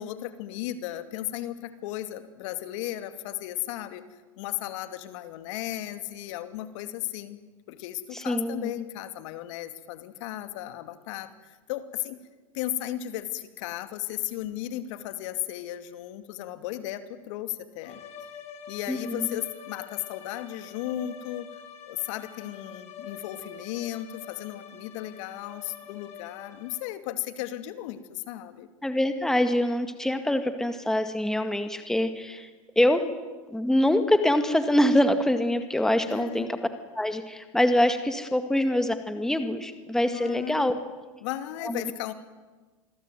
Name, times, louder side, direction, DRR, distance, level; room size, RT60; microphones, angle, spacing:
voice 1, 0.0-4.0 4.4-7.4 7.7-12.2 12.5-18.0 18.7-21.5 21.9-28.7 36.1-36.5 40.1-40.8 41.2-42.1, left 13 dB, 60° left, 10 dB, 2.6 m, -35 dB
voice 2, 8.1-8.7 18.9-19.4 28.8-32.5 32.8-33.0 33.5-36.6 37.0-40.7 41.6-41.8, left 1 dB, 5° left, 9 dB, 2.0 m, -24 dB
sound 1, 17.8-27.0, left 8 dB, 35° left, 4.3 m, -45 dB
27.5 x 21.5 x 9.3 m, 1.3 s
hypercardioid pair, 125°, 18 cm